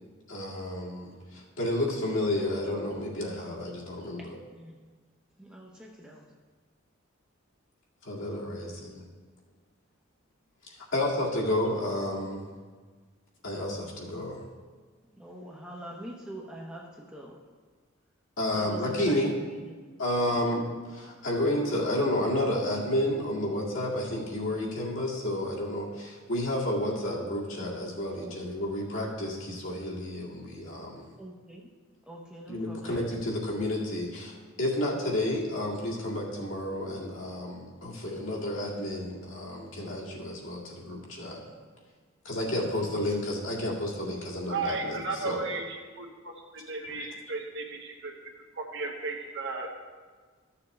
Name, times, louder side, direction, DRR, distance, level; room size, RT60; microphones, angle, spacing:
voice 1, 0.3-4.4 8.1-9.1 10.9-12.4 13.4-14.4 18.4-19.4 20.0-31.0 32.5-41.4 42.3-45.4 46.8-47.1, left 1 dB, 70° left, -4 dB, 2.0 m, -31 dB
voice 2, 4.2-4.9 5.4-6.3 8.6-8.7 15.1-17.4 18.5-19.1 19.5-19.7 20.3-20.4 28.1-28.4 31.2-31.7 32.0-33.0 37.8-37.9 42.5-43.0, right 1 dB, 5° right, -3 dB, 0.8 m, -45 dB
voice 3, 44.5-48.1 48.5-49.7, right 3 dB, 60° right, 1 dB, 1.2 m, -35 dB
14.0 x 6.8 x 3.2 m, 1.5 s
head